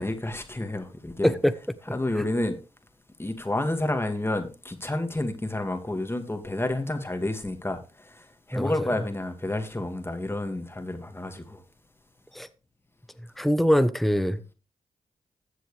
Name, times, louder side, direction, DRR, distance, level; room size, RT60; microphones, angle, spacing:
voice 1, 0.0-1.3 1.9-2.6 3.2-11.6, left 1 dB, 20° left, 2.2 m, -30 dB
voice 2, 1.2-1.5 1.9-2.0 8.5-8.7 12.3-12.5 13.4-14.4, equal, ahead, 1.1 m, -23 dB
14.0 x 7.7 x 3.4 m
supercardioid pair, 40°, 13 cm